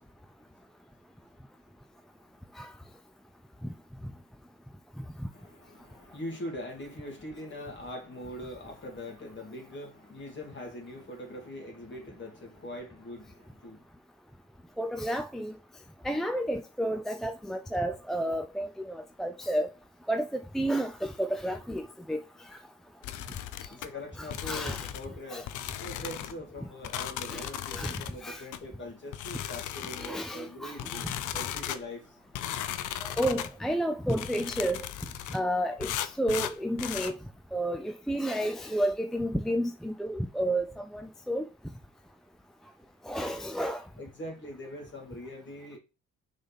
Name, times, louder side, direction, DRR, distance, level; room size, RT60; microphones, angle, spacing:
voice 1, 5.3-13.8 23.7-25.5 25.8-32.0 44.0-45.8, left 1 dB, 40° left, 2.6 m, -42 dB
voice 2, 14.8-15.5 16.0-19.7 20.1-22.2 24.2-24.9 25.3-25.4 27.3-27.5 27.7-27.9 28.2-28.4 30.0-30.8 33.0-34.8 35.3-35.9 36.2-37.1 37.5-40.6 40.9-41.4 43.1-43.8, right 1 dB, ahead, 0.5 m, -31 dB
sound 1, 23.0-23.9 24.3-25.1 25.5-26.3 26.8-28.1 28.5-28.6 29.1-30.2 30.8-31.8 32.3-33.5 34.1-35.4 35.8-37.1, left 11 dB, 80° left, 0.6 m, -36 dB
6.3 x 4.1 x 4.1 m
cardioid pair, 90°, 30 cm